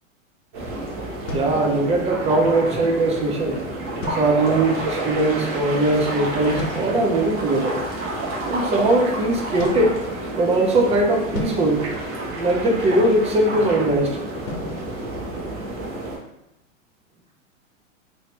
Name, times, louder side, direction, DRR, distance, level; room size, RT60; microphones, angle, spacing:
sound 1, 0.5-16.2, right 1 dB, 40° right, 1.1 m, -29 dB
sound 2, 1.3-2.4 4.0-4.8 6.6-7.2 9.6-10.7 11.3-12.8 14.5-16.0, left 2 dB, 65° left, 1.0 m, -36 dB
voice 1, 1.3-3.6 4.1-7.8 8.4-9.9 10.3-11.9 12.4-14.2, right 2 dB, 15° right, 0 dB, 0.6 m, -20 dB
3.0 x 2.7 x 3.0 m, 0.89 s
hypercardioid pair, 115°, 39 cm